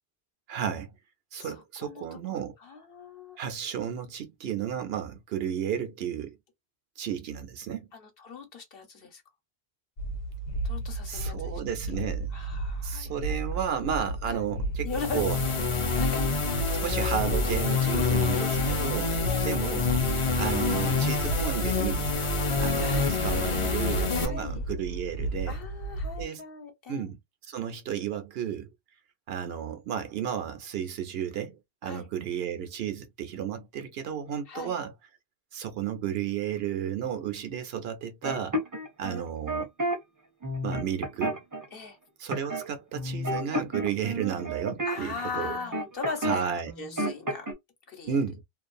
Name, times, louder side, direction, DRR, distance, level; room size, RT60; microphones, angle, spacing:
voice 1, 0.5-0.9 1.3-2.6 3.4-6.4 7.0-7.9 11.1-12.3 12.8-14.9 15.1-15.4 16.8-19.9 20.4-22.1 22.6-25.6 26.2-26.4 26.9-27.2 27.5-28.7 29.3-34.9 35.5-38.6 39.0-39.7 40.6-41.4 42.2-45.5 46.2-46.7 48.1-48.4, right 8 dB, 70° right, 0.8 m, -33 dB
voice 2, 1.8-3.4 7.9-9.2 10.6-11.6 12.3-13.4 14.3-14.4 14.8-15.3 15.5-16.8 17.9-18.3 19.2-19.6 22.8-23.3 24.1-24.6 25.5-27.1 31.8-32.1 34.5-34.7 41.7-42.0 44.8-47.5 47.9-48.2, left 5 dB, 60° left, 1.1 m, -39 dB
sound 1, 10.0-26.2, right 2 dB, 90° left, 1.0 m, -34 dB
sound 2, 14.9-24.3, left 4 dB, 35° left, 0.6 m, -27 dB
sound 3, 38.2-40.0 40.4-41.6 42.3-42.7 42.9-46.4 46.7-47.5, right 1 dB, 25° right, 0.5 m, -31 dB
2.5 x 2.3 x 2.5 m
omnidirectional pair, 1.1 m